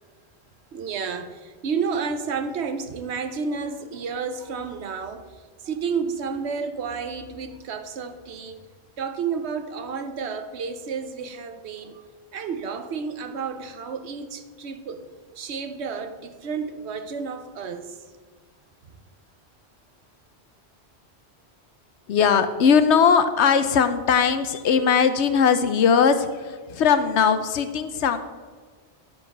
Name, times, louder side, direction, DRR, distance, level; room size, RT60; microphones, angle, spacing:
voice 1, 0.7-8.6 9.0-12.0 12.3-15.0 15.3-18.0, right 5 dB, 75° right, 1.1 m, -31 dB
voice 2, 22.1-28.2, left 6 dB, 90° left, 1.0 m, -19 dB
11.0 x 4.8 x 5.9 m
omnidirectional pair, 1.1 m